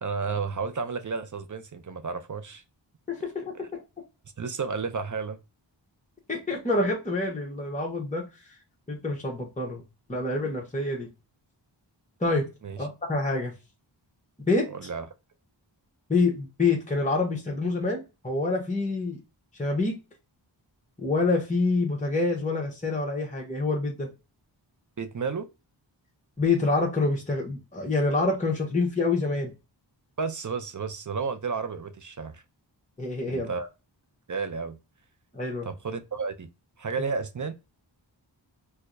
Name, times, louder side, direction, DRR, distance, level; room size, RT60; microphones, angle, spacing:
voice 1, 0.0-2.6 4.4-5.4 12.6-12.8 14.7-15.1 25.0-25.5 30.2-32.4 33.3-33.7 34.3-34.8 35.6-36.5 36.8-37.5, right 5 dB, 45° right, 0.5 m, -32 dB
voice 2, 3.1-3.7 6.3-8.2 8.9-9.8 10.1-11.1 12.2-12.5 12.8-13.5 14.5-14.7 16.1-19.2 19.6-20.0 21.0-24.1 26.4-29.5 33.0-33.5 35.3-35.7, left 3 dB, 15° left, 1.0 m, -26 dB
4.4 x 2.1 x 2.6 m
wide cardioid pair, 45°, 45 cm